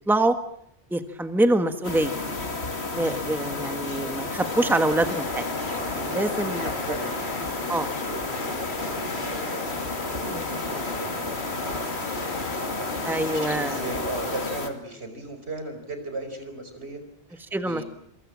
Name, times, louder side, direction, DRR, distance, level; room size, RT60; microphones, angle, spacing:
voice 1, 0.9-2.2 2.9-5.5 5.8-6.7 7.7-7.9 10.3-10.5 13.0-13.8 17.5-17.8, right 1 dB, ahead, 8 dB, 1.5 m, -25 dB
sound 1, 1.8-14.7, left 3 dB, 75° left, 2.8 m, -32 dB
sound 2, 4.4-14.5, left 2 dB, 50° left, 2.4 m, -35 dB
voice 2, 6.1-17.0 17.3-17.8, right 2 dB, 75° right, 7 dB, 5.2 m, -38 dB
27.5 x 24.0 x 7.5 m, 0.71 s
omnidirectional pair, 1.1 m